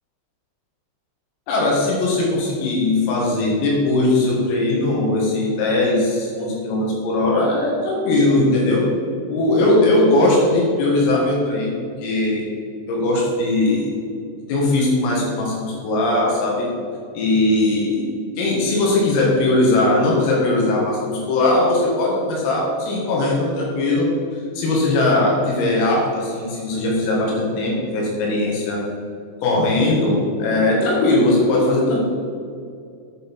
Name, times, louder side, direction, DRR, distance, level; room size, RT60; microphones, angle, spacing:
voice 1, 1.5-8.8 9.3-11.7 12.0-12.5 12.9-13.9 14.5-16.7 17.2-18.0 18.4-24.1 24.6-28.8 29.4-32.0, left 2 dB, 90° left, -3 dB, 4.4 m, -19 dB
9.1 x 7.1 x 4.5 m, 2.4 s
omnidirectional pair, 5.8 m